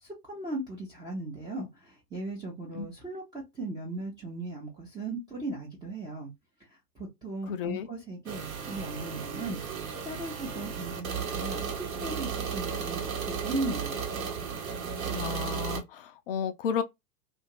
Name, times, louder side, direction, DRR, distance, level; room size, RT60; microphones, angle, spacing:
voice 1, 0.0-6.3 7.0-9.6 10.0-14.1, right 2 dB, 10° right, 0.5 m, -37 dB
voice 2, 7.5-7.9 15.1-16.8, left 7 dB, 35° left, 0.4 m, -32 dB
sound 1, 8.3-15.8, right 6 dB, 60° right, 1.1 m, -34 dB
2.5 x 2.4 x 2.9 m
figure-of-eight pair, 110°, 48 cm